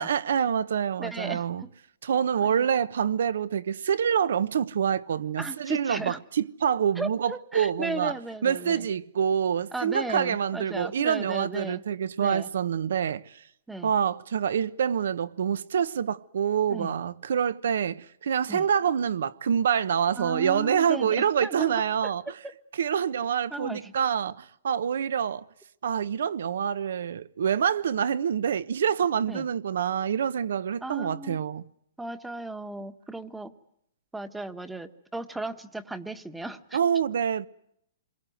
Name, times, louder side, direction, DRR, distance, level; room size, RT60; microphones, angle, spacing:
voice 1, 0.0-1.6 2.0-8.1 8.4-13.4 13.8-22.2 22.8-25.4 25.8-31.6 36.7-37.5, right 8 dB, 75° right, 1.1 m, -26 dB
voice 2, 1.0-1.7 2.4-2.5 5.4-6.2 7.0-8.9 9.7-11.8 12.2-12.5 13.7-13.9 16.7-16.9 18.5-18.6 20.1-22.1 22.4-22.5 23.5-23.9 29.3-29.4 30.8-31.4 32.0-33.5 34.1-36.8, right 2 dB, 5° right, 1.2 m, -36 dB
27.0 x 23.0 x 7.8 m
hypercardioid pair, 155°, 0 cm